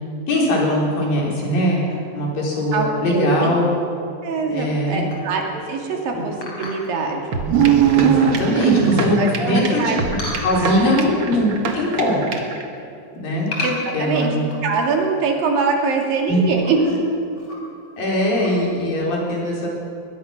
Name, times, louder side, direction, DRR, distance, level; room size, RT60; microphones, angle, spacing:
voice 1, 0.3-3.7 4.5-5.0 6.1-6.2 7.9-9.9 10.4-12.3 13.2-13.5 13.9-14.4 16.3-16.4 16.8-17.0 18.0-19.7, left 1 dB, 70° left, -3 dB, 6.1 m, -21 dB
voice 2, 2.7-3.6 4.2-7.4 9.2-10.0 10.5-11.0 13.6-16.8, right 4 dB, 75° right, 1 dB, 4.1 m, -23 dB
sound 1, 5.1-5.4 6.4-7.0 7.6-7.7 8.2-8.8 10.2-11.0 11.4-11.9 12.2-12.6 13.5-15.0 15.4-15.5 15.7-15.8 16.4-16.7 17.3-17.9 18.3-18.5, left 2 dB, 40° left, 4.2 m, -33 dB
sound 2, 7.3-12.6, right 4 dB, 45° right, 1.9 m, -29 dB
sound 3, 7.4-9.4, right 8 dB, 90° right, 3.4 m, -17 dB
22.0 x 20.0 x 6.1 m, 2.6 s
omnidirectional pair, 4.2 m